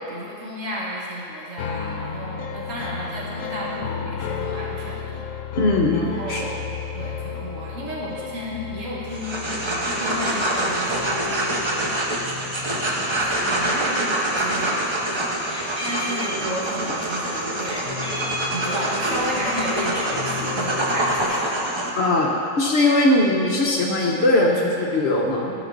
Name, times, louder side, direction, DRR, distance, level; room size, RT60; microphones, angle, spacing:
voice 1, 0.1-5.2 5.9-9.4 9.6-12.0 12.6-15.3 15.8-18.1 18.5-21.5 21.8-22.0, equal, 65° right, -6 dB, 1.9 m, -33 dB
sound 1, 1.6-14.1 17.1-21.3, left 7 dB, 80° left, 1.1 m, -34 dB
voice 2, 5.5-6.4 22.0-22.3 22.6-25.5, left 2 dB, 55° left, -1 dB, 1.1 m, -20 dB
sound 2, 9.1-21.9, right 1 dB, 25° right, 0.6 m, -25 dB
Meow, 14.3-14.9 15.1-17.1 17.6-19.1 19.4-20.3, equal, 5° left, 0.8 m, -34 dB
12.0 x 5.8 x 3.9 m, 2.7 s
omnidirectional pair, 1.5 m